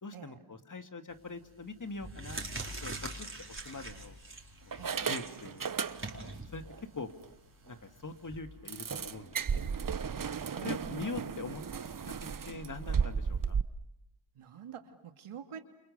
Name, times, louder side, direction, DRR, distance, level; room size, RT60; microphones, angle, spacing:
voice 1, 0.0-2.4 2.8-4.2 4.7-5.8 6.5-6.6 6.9-7.1 7.6-9.6 10.6-11.6 12.0-12.1 12.5-13.6, left 3 dB, 35° left, 8 dB, 2.4 m, -43 dB
sound 1, 1.1-1.4 1.9-8.4, right 2 dB, 25° right, 4.6 m, -44 dB
sound 2, 2.7-2.9 3.6-4.2 4.7-6.4 6.7-6.8 7.2-7.3 7.7-7.8 8.7-13.6, right 6 dB, 40° right, 1.2 m, -35 dB
voice 2, 10.4-11.1 14.3-15.6, right 8 dB, 80° right, 7 dB, 2.5 m, -47 dB
29.0 x 28.5 x 6.8 m, 0.84 s
cardioid pair, 65°, 50 cm